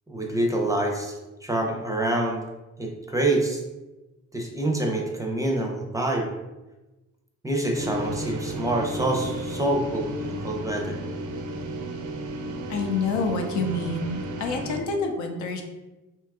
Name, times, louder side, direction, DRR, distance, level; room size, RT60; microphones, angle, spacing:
voice 1, 0.1-2.4 2.8-3.6 4.3-6.3 7.4-11.0, right 1 dB, 10° right, 0 dB, 0.5 m, -26 dB
sound 1, 7.7-14.8, right 1 dB, 75° right, 0.5 m, -33 dB
voice 2, 12.7-15.6, left 3 dB, 70° left, 3 dB, 0.6 m, -27 dB
2.7 x 2.3 x 3.4 m, 1.1 s
cardioid pair, 90°, 30 cm